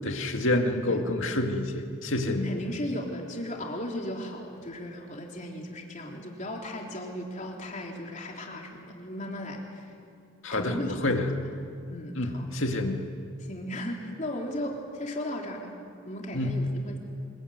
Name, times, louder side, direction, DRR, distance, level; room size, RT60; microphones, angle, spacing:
voice 1, 0.0-2.5 10.4-11.3 12.2-13.0 16.3-16.6, left 1 dB, 60° left, 4 dB, 2.3 m, -28 dB
voice 2, 0.9-1.4 2.2-9.9 10.5-11.2 11.9-12.5 13.4-15.7 16.0-17.0, left 1 dB, 35° left, 0 dB, 3.6 m, -36 dB
26.0 x 22.5 x 9.5 m, 2.4 s
head